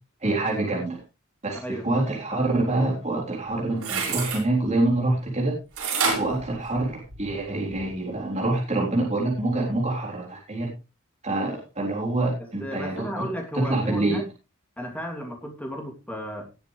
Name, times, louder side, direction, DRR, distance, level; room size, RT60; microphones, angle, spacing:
voice 1, 0.2-1.0 1.4-5.5 6.2-10.7 11.2-13.2 13.5-14.2, right 2 dB, 30° right, -3 dB, 3.8 m, -26 dB
voice 2, 1.5-1.9 12.4-14.2 14.8-16.5, equal, 5° left, 1 dB, 2.9 m, -34 dB
sound 1, 3.5-4.4 5.8-7.3 7.8-7.9, right 5 dB, 85° right, 5.9 m, -28 dB
19.0 x 7.9 x 3.3 m, 0.28 s
head